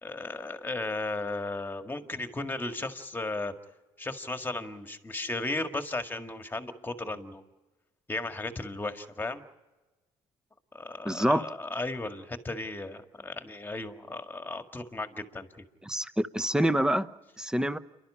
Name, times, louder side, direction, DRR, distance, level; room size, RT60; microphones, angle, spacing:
voice 1, 0.0-3.5 4.0-7.4 8.1-9.4 10.7-15.5, left 2 dB, 15° left, 7 dB, 1.9 m, -35 dB
voice 2, 11.0-11.5 15.9-17.1 17.4-17.8, right 1 dB, 5° right, 13 dB, 0.9 m, -26 dB
28.5 x 12.0 x 9.9 m, 1.2 s
cardioid pair, 95°, 14 cm